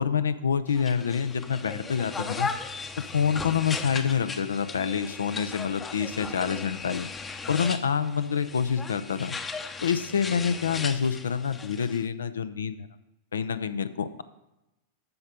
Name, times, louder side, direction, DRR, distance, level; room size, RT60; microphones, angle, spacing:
voice 1, 0.0-2.5 3.0-7.1 7.5-9.4 9.8-12.9 13.3-14.2, left 7 dB, 70° left, 12 dB, 0.6 m, -27 dB
sound 1, 0.7-12.1, left 4 dB, 20° left, 0.8 m, -37 dB
14.0 x 5.3 x 5.2 m, 0.96 s
figure-of-eight pair, 90°, 0 cm